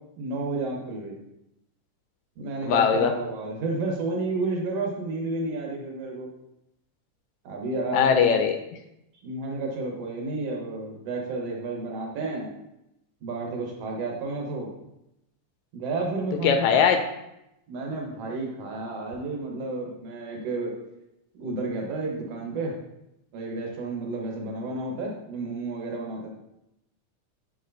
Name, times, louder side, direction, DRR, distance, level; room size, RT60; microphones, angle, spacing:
voice 1, 0.2-1.2 2.4-6.3 7.4-8.3 9.2-12.5 13.2-14.7 15.7-16.7 17.7-20.7 21.3-22.8 23.3-26.3, right 2 dB, 65° right, 0 dB, 2.1 m, -31 dB
voice 2, 2.6-3.1 7.9-8.6 16.4-17.0, left 7 dB, 80° left, 6 dB, 1.9 m, -20 dB
7.2 x 5.7 x 2.6 m, 0.86 s
omnidirectional pair, 3.3 m